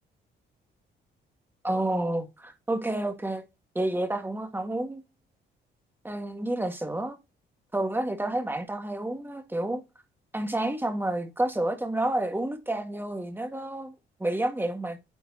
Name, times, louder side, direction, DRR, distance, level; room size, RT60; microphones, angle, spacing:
voice 1, 1.6-3.4 3.8-5.0 6.0-7.2 7.7-9.8 10.3-13.9 14.2-15.0, right 1 dB, 10° right, 1.9 m, -29 dB
9.5 x 5.0 x 3.0 m
cardioid pair, 90°, 20 cm